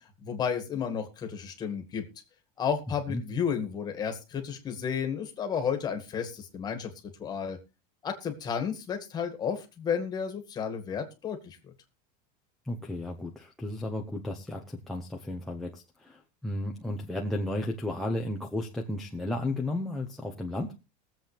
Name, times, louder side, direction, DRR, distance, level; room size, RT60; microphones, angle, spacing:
voice 1, 0.2-2.0 2.6-6.9 7.2-7.6 8.0-11.7, left 7 dB, 20° left, 5 dB, 2.0 m, -32 dB
voice 2, 12.6-20.7, left 1 dB, ahead, 6 dB, 0.8 m, -33 dB
21.5 x 7.7 x 3.4 m, 0.28 s
supercardioid pair, 175°, 21 cm